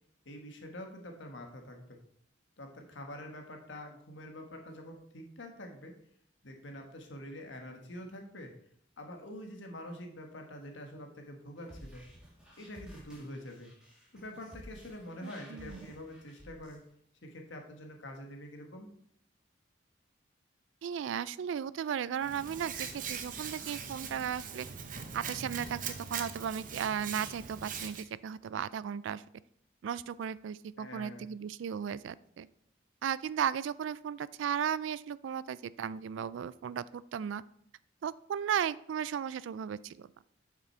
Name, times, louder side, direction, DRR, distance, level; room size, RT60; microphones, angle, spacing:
voice 1, 0.2-2.0 2.6-5.9 6.4-8.5 9.0-12.0 12.6-13.7 14.1-16.8 17.2-18.9 30.8-31.3, left 1 dB, 80° left, 3 dB, 1.3 m, -46 dB
sound 1, 11.6-16.8, equal, 5° right, 2.4 m, -53 dB
voice 2, 15.2-15.8 20.8-24.7 25.1-25.8 26.1-29.2 29.8-32.5 33.0-37.4 38.0-40.1, right 8 dB, 85° right, 18 dB, 0.3 m, -35 dB
Hands, 22.2-28.0, right 6 dB, 45° right, 0.8 m, -41 dB
7.9 x 6.0 x 4.4 m, 0.69 s
head